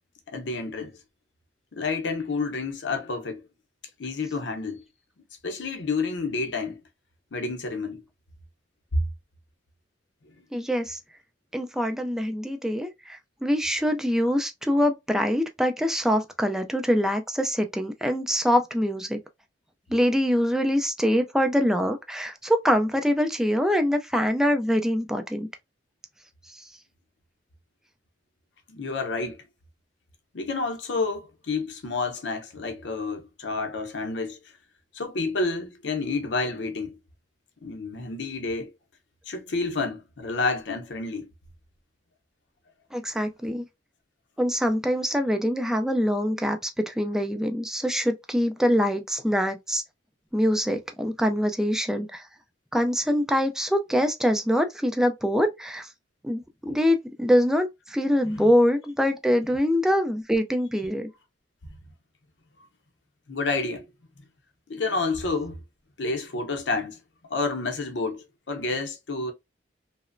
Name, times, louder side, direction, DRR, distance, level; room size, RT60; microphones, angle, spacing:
voice 1, 0.3-1.0 1.7-3.5 4.0-4.9 5.4-6.8 7.3-8.1 8.9-9.0 28.7-29.5 30.3-34.4 34.9-37.0 37.6-38.7 39.3-41.3 58.2-58.5 63.3-63.9 64.2-64.3 64.7-65.6 66.0-67.0 67.3-69.3, left 3 dB, 80° left, 0.7 m, -29 dB
voice 2, 10.5-11.0 11.5-19.2 19.9-25.5 26.5-26.7 42.9-43.6 44.4-46.6 46.9-49.8 50.3-52.3 52.7-55.9 56.2-61.1, equal, 5° right, 0.3 m, -24 dB
2.9 x 2.0 x 2.4 m
head